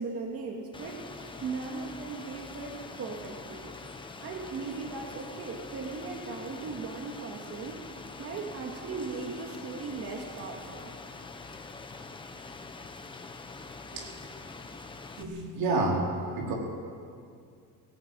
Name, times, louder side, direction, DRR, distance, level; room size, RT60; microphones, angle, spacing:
voice 1, 0.0-3.6 4.2-7.8 8.2-10.9, right 4 dB, 40° right, 0 dB, 2.3 m, -38 dB
Rain, 0.7-15.2, left 3 dB, 15° left, 1.1 m, -44 dB
voice 2, 15.2-16.0 16.4-16.5, right 3 dB, 85° right, -1 dB, 4.6 m, -29 dB
18.0 x 16.0 x 9.0 m, 2.2 s
cardioid pair, 160°, 34 cm